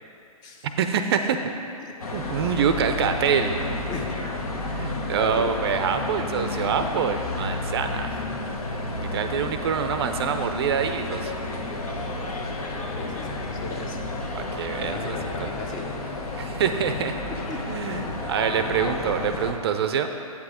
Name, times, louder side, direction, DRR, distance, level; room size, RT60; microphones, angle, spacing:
voice 1, 0.8-1.4 2.1-3.6 4.7-8.2 9.0-11.3 14.3-15.5 16.3-17.1 17.6-18.0 18.3-20.1, right 7 dB, 45° right, 7 dB, 0.4 m, -25 dB
voice 2, 1.8-2.3 3.9-4.1 5.2-5.6 13.0-14.0 14.7-15.9 16.9-17.2 17.5-19.5, left 4 dB, 20° left, 3 dB, 0.7 m, -37 dB
sound 1, 2.0-19.5, left 2 dB, 75° left, 1.2 m, -31 dB
8.3 x 6.0 x 4.9 m, 2.6 s
hypercardioid pair, 130°, 19 cm